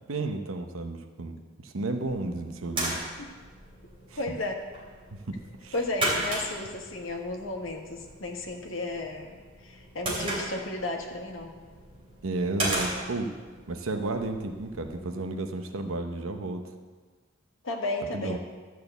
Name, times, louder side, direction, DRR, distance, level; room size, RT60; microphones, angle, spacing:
voice 1, 0.1-3.0 4.1-4.2 5.3-5.7 12.2-13.3 13.7-16.7 18.1-18.4, right 2 dB, 85° right, 5 dB, 0.8 m, -32 dB
sound 1, 1.9-15.0, right 1 dB, 25° right, 3.1 m, -36 dB
voice 2, 4.2-4.6 5.7-9.3 9.6-11.5 17.6-18.4, left 2 dB, 70° left, 2 dB, 1.5 m, -33 dB
12.5 x 4.8 x 8.0 m, 1.4 s
head